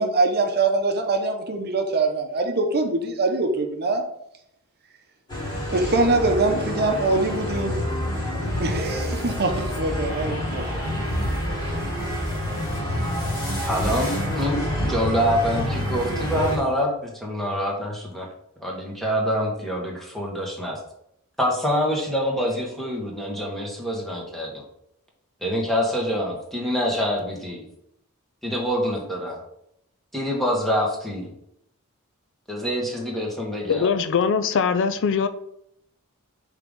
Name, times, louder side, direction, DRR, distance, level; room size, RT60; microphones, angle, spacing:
voice 1, 0.0-4.0 5.7-7.8 8.6-10.8, right 3 dB, 45° right, 4 dB, 0.8 m, -23 dB
sound 1, 5.3-16.6, left 1 dB, 20° left, 2.0 m, -27 dB
voice 2, 13.7-18.3 18.6-20.8 21.4-24.6 25.4-27.6 28.4-29.4 30.1-31.3 32.5-33.9, equal, ahead, -2 dB, 1.5 m, -26 dB
voice 3, 33.7-35.3, left 6 dB, 55° left, 11 dB, 0.4 m, -21 dB
5.8 x 3.7 x 5.3 m, 0.76 s
head